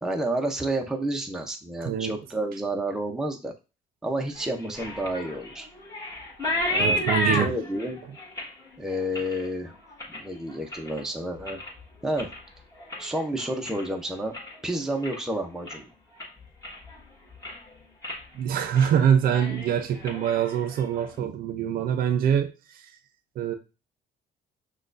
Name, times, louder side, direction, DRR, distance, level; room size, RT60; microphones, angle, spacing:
voice 1, 0.0-3.5 4.0-5.7 6.7-8.0 8.8-9.7 10.1-11.6 12.0-12.3 13.0-14.3 14.6-15.9 21.2-21.3, right 1 dB, 5° right, 0.7 m, -30 dB
voice 2, 1.8-2.2 6.8-7.5 18.3-22.8 23.4-23.5, right 8 dB, 60° right, 0.5 m, -24 dB
sound 1, 4.4-11.0 11.4-11.8 12.1-14.6 14.9-15.3 15.7-15.8 16.2-17.0 17.3-17.7 18.0-18.2 18.6-18.9 19.2-21.1, left 1 dB, 20° left, 1.5 m, -32 dB
6.1 x 2.4 x 2.5 m
cardioid pair, 110°, 17 cm